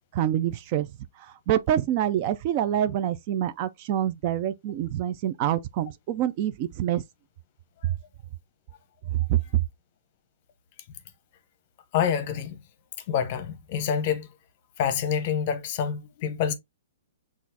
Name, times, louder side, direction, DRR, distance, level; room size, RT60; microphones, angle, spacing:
voice 1, 0.1-0.9 1.2-7.0 9.1-9.4, right 11 dB, 35° right, 0.3 m, -26 dB
voice 2, 11.9-12.6 13.1-14.3 14.8-16.5, left 8 dB, 40° left, 0.8 m, -27 dB
6.0 x 2.4 x 2.7 m
hypercardioid pair, 155°, 0 cm